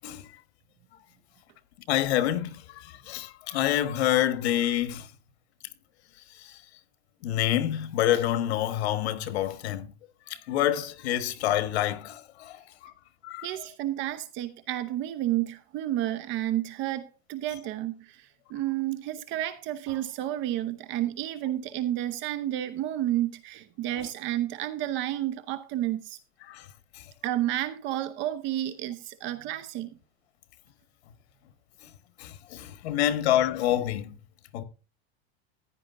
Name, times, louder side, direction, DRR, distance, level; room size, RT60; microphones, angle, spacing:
voice 1, 1.9-5.1 6.4-6.5 7.2-9.9 10.3-12.9 13.2-13.5 26.5-26.6 26.9-27.0 32.2-34.2 34.5-34.6, left 12 dB, 85° left, 1.4 m, -27 dB
voice 2, 13.4-26.2 27.2-29.9, right 13 dB, 35° right, 0.8 m, -31 dB
15.0 x 10.5 x 2.6 m
supercardioid pair, 160°, 32 cm